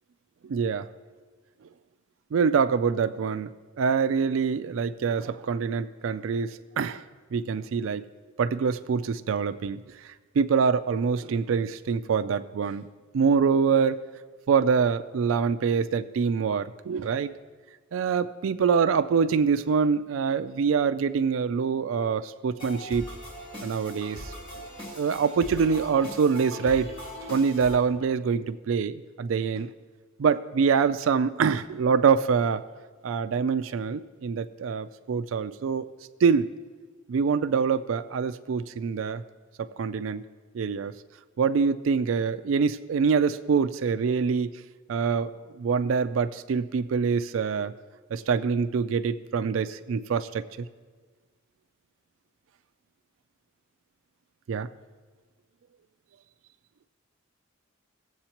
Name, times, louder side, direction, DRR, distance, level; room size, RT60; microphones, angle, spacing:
voice 1, 0.4-0.9 2.3-3.5 3.8-7.0 7.3-8.0 8.4-9.8 10.4-12.9 13.1-14.0 14.5-17.3 17.9-23.1 23.6-24.3 24.9-26.9 27.2-29.7 30.2-32.6 33.0-35.9 36.2-36.5 37.1-39.2 39.6-40.2 40.5-40.9 41.4-44.5 44.9-47.7 48.1-50.7 54.5-54.7, right 6 dB, 75° right, 11 dB, 0.4 m, -25 dB
sound 1, 22.6-27.8, equal, 30° left, 2.5 m, -40 dB
18.0 x 7.8 x 2.9 m, 1.4 s
head